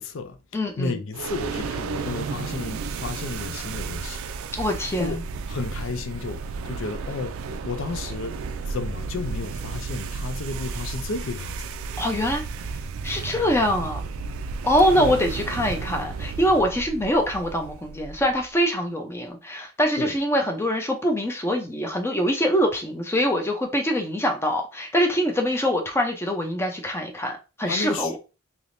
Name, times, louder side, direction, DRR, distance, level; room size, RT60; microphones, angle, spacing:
voice 1, 0.0-0.4 0.8-4.2 5.0-5.2 5.5-8.4 8.7-11.7 15.0-15.2 20.0-20.2 27.7-28.2, left 4 dB, 65° left, 0.5 m, -32 dB
voice 2, 0.5-1.0 4.6-5.2 12.0-12.4 13.0-14.0 14.6-28.2, equal, 10° left, 0.5 m, -24 dB
sound 1, 1.1-18.5, right 4 dB, 80° right, 0.3 m, -33 dB
3.4 x 2.9 x 2.6 m
head